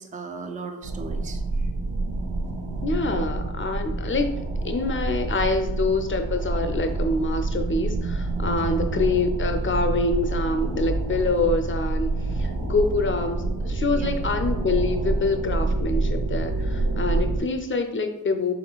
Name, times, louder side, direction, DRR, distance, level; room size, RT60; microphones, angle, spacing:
voice 1, 0.0-1.7 8.6-8.8 13.9-14.1, right 4 dB, 25° right, 6 dB, 0.4 m, -37 dB
sound 1, 0.8-17.4, right 2 dB, 85° right, 0.7 m, -27 dB
voice 2, 2.8-4.3 4.6-18.5, left 3 dB, 35° left, 6 dB, 0.5 m, -26 dB
5.6 x 4.1 x 2.3 m, 0.93 s
wide cardioid pair, 145°, 35 cm